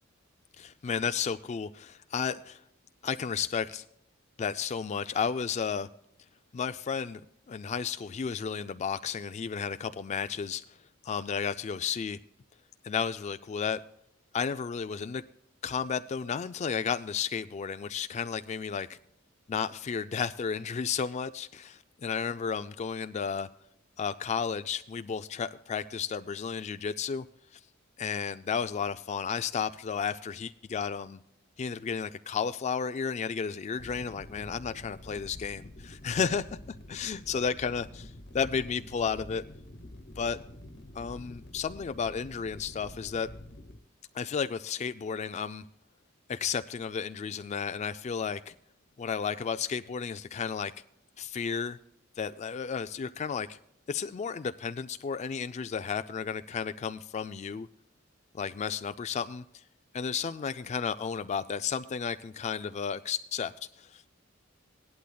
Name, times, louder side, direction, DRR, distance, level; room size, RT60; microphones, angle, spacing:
voice 1, 0.6-2.6 3.0-3.8 4.4-5.9 6.5-7.2 7.5-10.6 11.0-12.2 12.8-13.8 14.3-15.2 15.6-19.0 19.5-23.5 24.0-27.3 27.5-27.6 28.0-31.2 31.6-36.6 36.9-38.1 38.3-39.4 40.2-40.4 40.9-43.3 44.1-45.6 46.3-48.5 49.0-50.7 51.2-51.8 52.2-53.6 53.9-57.7 58.3-59.6 59.9-64.1, left 6 dB, 35° left, 11 dB, 0.3 m, -33 dB
sound 1, 33.8-43.8, left 1 dB, 55° left, 1.2 m, -47 dB
18.0 x 11.5 x 2.3 m, 0.76 s
head